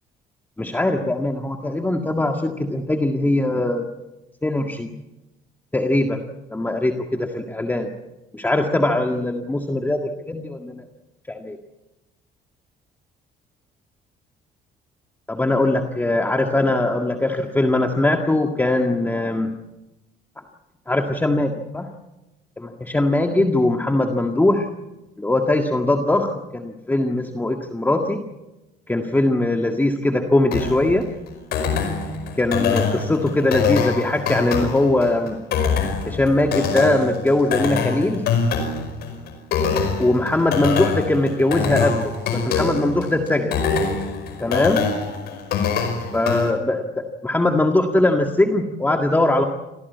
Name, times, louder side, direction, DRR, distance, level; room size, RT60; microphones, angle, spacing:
voice 1, 0.6-3.9 4.4-4.9 5.7-6.2 6.5-7.9 8.3-10.8 11.3-11.6 15.3-19.5 20.9-21.9 22.6-24.7 25.2-28.2 28.9-31.1 32.4-35.4 36.1-38.3 40.0-43.6 44.4-44.8 46.1-49.4, left 2 dB, 10° left, 3 dB, 1.8 m, -21 dB
sound 1, 30.5-46.5, left 5 dB, 70° left, 5.2 m, -24 dB
27.0 x 17.0 x 8.3 m, 1.0 s
cardioid pair, 110°, 17 cm